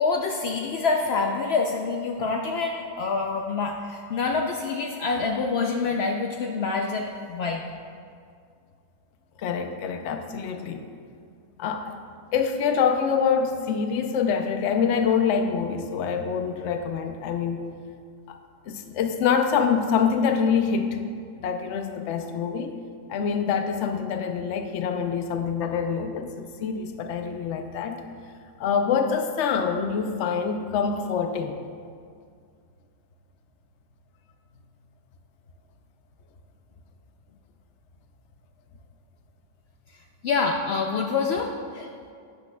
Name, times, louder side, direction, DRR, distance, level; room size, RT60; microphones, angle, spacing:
voice 1, 0.0-7.6 40.2-41.9, left 4 dB, 90° left, 2 dB, 0.5 m, -26 dB
voice 2, 9.4-10.8 11.6-12.0 12.3-17.6 18.3-18.4 18.7-21.0 21.4-22.8 23.1-28.0 28.6-31.6, left 6 dB, 60° left, 6 dB, 0.8 m, -25 dB
11.5 x 8.5 x 2.3 m, 2.2 s
omnidirectional pair, 1.7 m